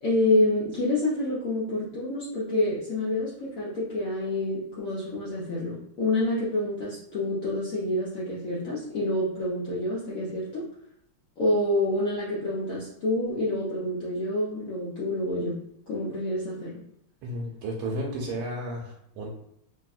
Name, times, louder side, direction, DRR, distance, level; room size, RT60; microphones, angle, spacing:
voice 1, 0.0-10.6 11.4-15.6 15.9-16.7, left 1 dB, 65° left, -7 dB, 0.8 m, -27 dB
voice 2, 17.2-19.3, right 1 dB, 90° right, -1 dB, 1.4 m, -33 dB
3.2 x 2.7 x 2.4 m, 0.76 s
omnidirectional pair, 2.2 m